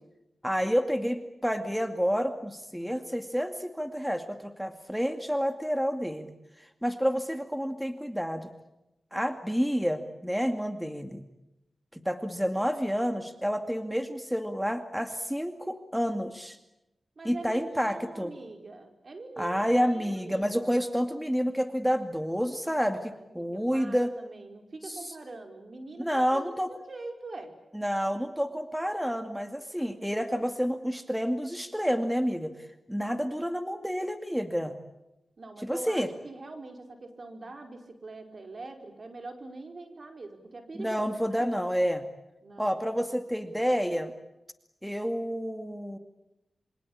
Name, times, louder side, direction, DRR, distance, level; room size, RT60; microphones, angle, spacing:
voice 1, 0.4-6.3 6.8-8.5 9.1-11.2 11.9-16.6 17.2-18.3 19.4-24.1 24.8-25.0 26.0-26.7 27.7-32.5 32.9-34.7 35.6-36.1 40.7-42.0 42.6-44.1 44.8-46.0, equal, ahead, 7 dB, 2.3 m, -29 dB
voice 2, 17.2-20.7 22.8-27.5 35.4-41.4 42.4-42.7, right 3 dB, 55° right, 5 dB, 5.0 m, -44 dB
27.5 x 24.5 x 8.7 m, 0.93 s
cardioid pair, 45°, 0 cm